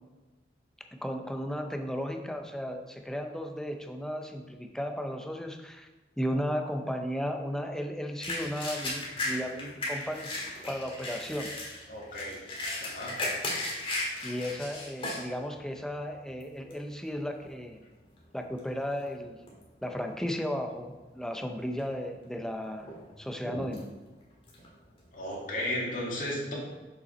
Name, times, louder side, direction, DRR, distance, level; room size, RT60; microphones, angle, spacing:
voice 1, 0.9-5.9 6.2-11.5 14.2-17.8 18.3-19.4 19.8-22.9 23.2-23.9, equal, 5° left, 4 dB, 0.5 m, -35 dB
sound 1, 8.2-15.3 15.8-15.9 16.4-16.8 17.5-17.7 18.0-19.1 19.5-20.0 20.4-20.5 21.3-21.9 22.3-25.4, left 2 dB, 30° left, 1.7 m, -36 dB
voice 2, 11.9-12.4 12.8-13.3 25.1-26.5, left 1 dB, 50° left, -3 dB, 2.1 m, -34 dB
6.8 x 5.5 x 4.2 m, 1.2 s
head